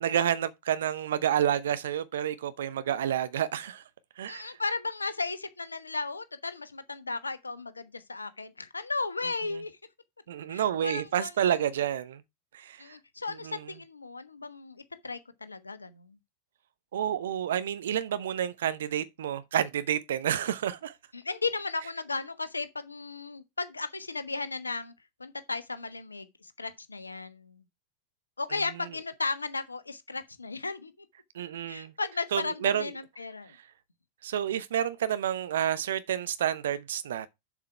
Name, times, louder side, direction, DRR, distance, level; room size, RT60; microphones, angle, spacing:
voice 1, 0.0-3.8 4.2-4.5 9.5-9.6 10.3-12.2 12.5-13.0 13.4-13.7 16.9-20.9 28.5-28.6 31.3-31.9 32.3-32.9 34.2-37.3, right 10 dB, 60° right, 0.8 m, -29 dB
voice 2, 4.3-9.7 10.5-11.5 12.8-16.2 21.1-24.9 25.2-27.6 28.4-30.9 31.7-33.5, left 3 dB, 80° left, 1.1 m, -35 dB
7.3 x 6.1 x 4.6 m
figure-of-eight pair, 90°, 0 cm